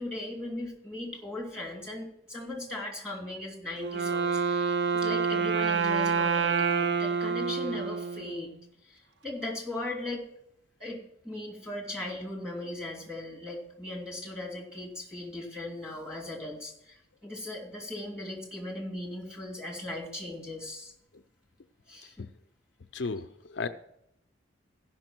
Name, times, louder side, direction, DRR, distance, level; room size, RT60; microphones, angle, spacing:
voice 1, 0.0-8.5 8.8-10.2 10.8-20.9 21.9-22.3, left 1 dB, 5° right, -2 dB, 3.0 m, -38 dB
Wind instrument woodwind instrument, 3.8-8.6, right 5 dB, 65° right, 0.7 m, -28 dB
voice 2, 22.9-23.7, left 4 dB, 65° left, 9 dB, 0.5 m, -34 dB
15.0 x 6.0 x 6.0 m, 0.77 s
head